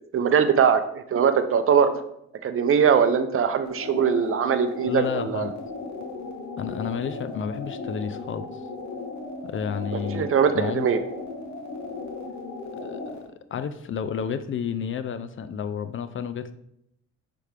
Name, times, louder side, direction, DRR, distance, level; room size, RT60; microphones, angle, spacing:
voice 1, 0.1-1.9 2.4-5.5 9.9-11.0, right 7 dB, 45° right, 9 dB, 0.6 m, -21 dB
sound 1, 3.6-13.3, left 3 dB, 70° left, 1.2 m, -36 dB
voice 2, 4.9-5.6 6.6-8.6 9.4-10.9 12.8-13.2 13.5-16.5, left 7 dB, 45° left, 12 dB, 0.4 m, -31 dB
5.5 x 3.4 x 5.0 m, 0.78 s
cardioid pair, 90°, 30 cm